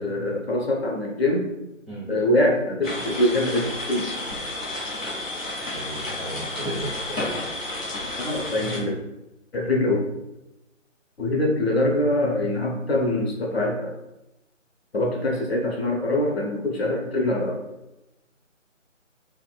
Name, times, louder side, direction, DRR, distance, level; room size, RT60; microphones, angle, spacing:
voice 1, 0.0-1.4 2.1-4.0 8.2-8.9 9.5-10.0 11.2-13.9 14.9-17.6, left 1 dB, 50° left, 0 dB, 0.7 m, -23 dB
sound 1, 2.8-8.8, left 2 dB, 85° left, 1.3 m, -31 dB
voice 2, 5.7-7.4, right 1 dB, ahead, -18 dB, 0.5 m, -34 dB
4.2 x 2.2 x 2.2 m, 0.94 s
figure-of-eight pair, 160°, 38 cm